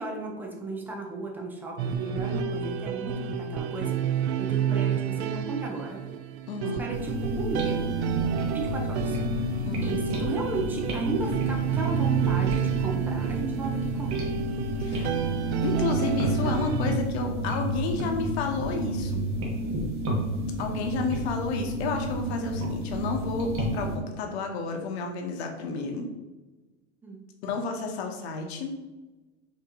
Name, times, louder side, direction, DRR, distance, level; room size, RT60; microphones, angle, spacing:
voice 1, 0.0-6.0 6.8-7.8 8.5-9.2 9.5-14.3 19.6-19.7 27.0-27.2, right 3 dB, 5° right, 0 dB, 0.3 m, -35 dB
sound 1, 1.8-17.0, right 7 dB, 65° right, 0.5 m, -29 dB
voice 2, 6.5-6.8 9.6-10.0 14.8-15.1 15.6-19.3 20.6-26.1 27.4-28.7, left 4 dB, 65° left, 3 dB, 1.0 m, -31 dB
sound 2, 6.9-24.0, equal, 35° right, 1.3 m, -31 dB
4.8 x 3.0 x 3.7 m, 1.1 s
supercardioid pair, 145°, 35 cm